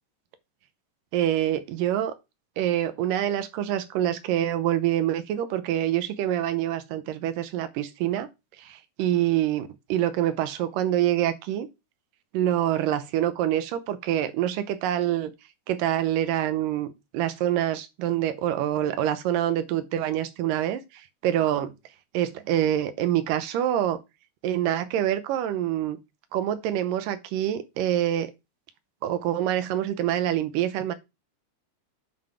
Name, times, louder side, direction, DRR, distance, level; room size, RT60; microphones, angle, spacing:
voice 1, 1.1-2.1 2.6-8.3 8.6-11.7 12.3-15.3 15.7-20.8 21.2-21.7 22.1-24.0 24.4-26.0 26.3-28.3 29.0-30.9, right 11 dB, 80° right, 2.4 m, -26 dB
9.6 x 4.1 x 4.9 m
omnidirectional pair, 3.8 m